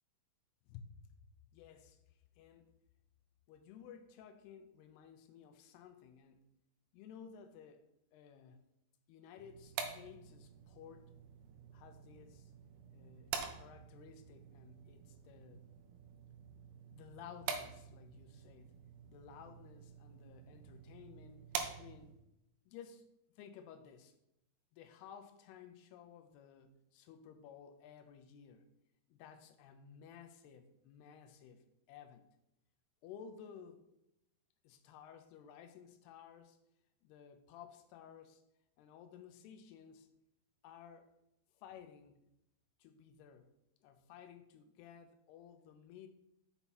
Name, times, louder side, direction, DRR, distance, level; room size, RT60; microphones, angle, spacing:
voice 1, 1.5-2.7 3.5-6.4 6.9-7.9 8.1-8.6 9.1-11.1 11.7-12.5 12.9-15.6 16.9-18.7 19.1-21.5 21.8-22.2 22.7-23.1 23.4-24.1 24.7-28.7 29.1-32.3 33.0-33.9 34.6-36.6 37.0-38.4 38.8-40.1 40.6-41.1 41.5-42.2 42.8-43.5 43.8-46.1, left 8 dB, 80° left, 8 dB, 2.6 m, -55 dB
sound 1, 9.4-22.3, right 7 dB, 80° right, 2.7 m, -47 dB
7.1 x 5.8 x 4.2 m, 0.84 s
omnidirectional pair, 4.7 m